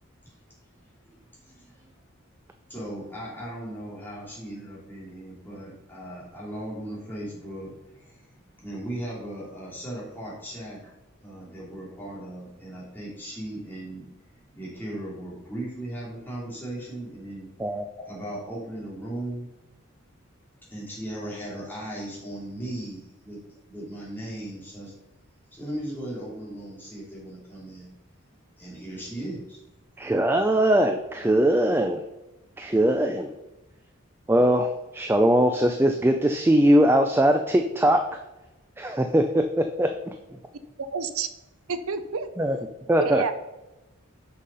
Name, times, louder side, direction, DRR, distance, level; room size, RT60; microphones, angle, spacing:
voice 1, 1.0-1.9 2.7-10.9 11.2-14.1 14.3-17.5 18.0-19.5 20.7-23.4 23.7-24.9 25.5-27.9 28.6-29.6, right 1 dB, 10° left, -6 dB, 2.8 m, -37 dB
voice 2, 30.0-32.0 32.6-33.3 34.3-38.1 38.8-40.1 42.4-42.6 42.9-43.2, right 1 dB, 10° right, 5 dB, 0.4 m, -21 dB
voice 3, 40.8-41.3 41.7-42.3 43.0-43.3, right 5 dB, 85° right, 10 dB, 0.6 m, -29 dB
6.4 x 5.7 x 5.5 m, 0.99 s
head